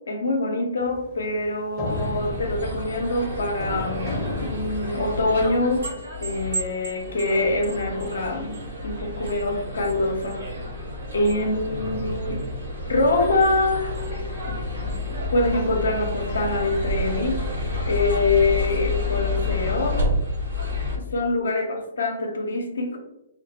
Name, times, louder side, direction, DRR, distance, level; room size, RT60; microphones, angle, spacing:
voice 1, 0.1-5.9 6.2-10.4 11.1-12.5 12.9-14.6 15.1-20.0 21.0-23.0, left 2 dB, 80° left, 3 dB, 0.5 m, -25 dB
sound 1, 0.8-5.7, left 2 dB, 30° left, 0.6 m, -35 dB
sound 2, 1.8-21.0, left 2 dB, 80° right, 0.8 m, -30 dB
2.2 x 2.2 x 2.7 m, 0.88 s
hypercardioid pair, 135°, 0 cm